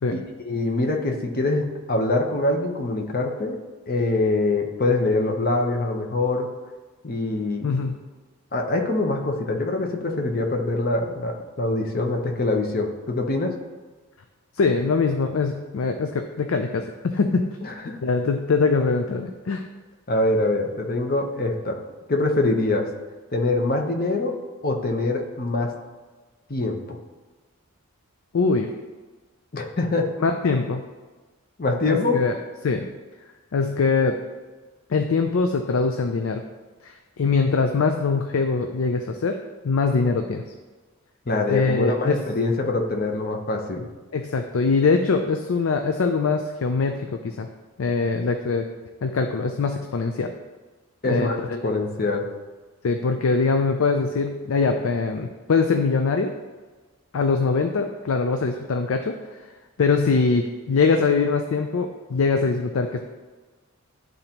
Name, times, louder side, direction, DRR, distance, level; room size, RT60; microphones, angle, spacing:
voice 1, 0.1-3.6 3.9-6.5 7.0-7.7 8.5-13.5 17.6-18.0 20.1-21.8 22.1-22.9 23.3-24.3 24.6-25.7 26.5-27.0 29.5-30.1 31.6-32.2 41.3-43.8 51.0-52.3, left 2 dB, 40° left, 3 dB, 0.8 m, -24 dB
voice 2, 7.6-8.0 14.6-17.5 18.0-19.6 28.3-28.7 30.2-30.8 31.9-32.3 32.6-32.8 33.5-34.2 34.9-36.4 36.8-39.4 39.6-40.4 41.5-42.2 44.1-47.5 47.8-48.7 49.0-50.3 51.1-51.6 52.8-56.3 57.1-59.1 59.8-63.0, left 4 dB, 70° left, 5 dB, 0.4 m, -22 dB
10.5 x 3.9 x 2.9 m, 1.3 s
head